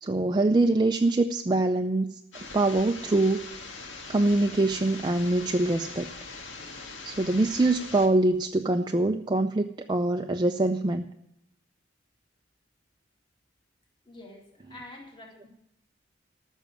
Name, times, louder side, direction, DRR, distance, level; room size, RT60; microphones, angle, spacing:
voice 1, 0.0-3.5 4.1-6.1 7.0-11.1, right 2 dB, 20° right, 5 dB, 0.4 m, -24 dB
sound 1, 2.3-8.1, left 3 dB, 80° left, 1.8 m, -42 dB
voice 2, 14.0-15.5, left 2 dB, 25° left, 1 dB, 2.5 m, -47 dB
14.0 x 6.4 x 9.0 m, 0.78 s
head